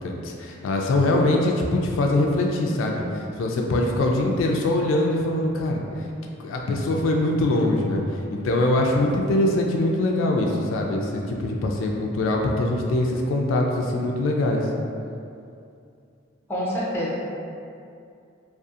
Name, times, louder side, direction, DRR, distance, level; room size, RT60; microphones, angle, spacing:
voice 1, 0.0-5.8 6.4-14.7, left 1 dB, 85° left, 0 dB, 0.3 m, -23 dB
voice 2, 16.5-17.2, equal, 10° left, -7 dB, 0.5 m, -26 dB
2.6 x 2.3 x 2.4 m, 2.5 s
head